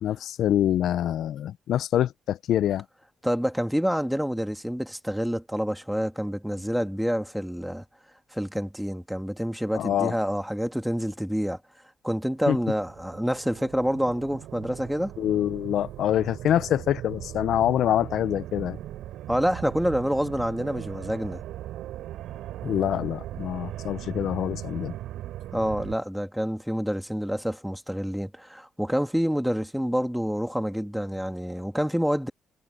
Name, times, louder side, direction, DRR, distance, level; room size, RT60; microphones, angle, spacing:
voice 1, 0.0-2.8 9.7-10.1 12.5-12.6 15.2-18.8 22.6-24.9, left 11 dB, 75° left, 0.4 m, -25 dB
voice 2, 3.2-7.8 8.3-11.6 12.0-15.1 19.3-21.4 25.5-32.3, equal, ahead, 2.1 m, -27 dB
sound 1, 12.4-26.0, right 13 dB, 85° right, 4.3 m, -39 dB
cardioid pair, 90°, 0 cm